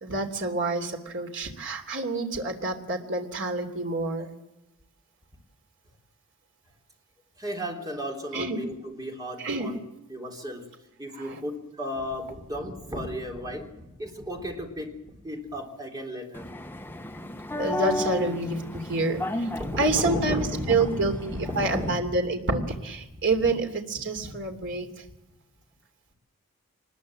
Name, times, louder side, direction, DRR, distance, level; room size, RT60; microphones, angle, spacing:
voice 1, 0.0-4.3 8.3-8.6 9.4-9.7 11.2-11.4 17.6-19.5 19.8-24.9, right 2 dB, 60° right, 4 dB, 3.1 m, -28 dB
voice 2, 7.4-9.8 10.1-10.7 11.0-16.5 19.5-22.0 23.4-23.5 24.0-24.3 24.6-24.8, equal, 15° right, 2 dB, 3.5 m, -34 dB
sound 1, 16.3-22.0, left 1 dB, 10° left, 0.7 m, -34 dB
24.5 x 20.5 x 7.8 m, 0.93 s
head